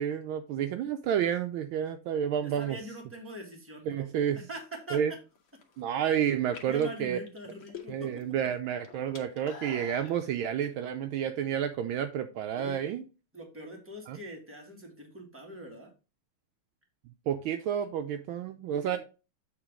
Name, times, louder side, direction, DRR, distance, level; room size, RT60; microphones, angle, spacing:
voice 1, 0.0-2.8 3.9-4.4 4.9-5.1 5.8-7.2 7.9-13.0 14.1-14.2 17.3-19.0, right 9 dB, 75° right, 1.3 m, -30 dB
voice 2, 2.4-5.0 6.6-8.2 12.5-12.8 13.3-15.9 18.8-19.0, right 1 dB, 5° right, 1.6 m, -43 dB
sound 1, 5.4-5.8 6.4-8.2 8.5-10.2, left 5 dB, 65° left, 1.8 m, -46 dB
8.1 x 3.4 x 4.9 m
omnidirectional pair, 2.4 m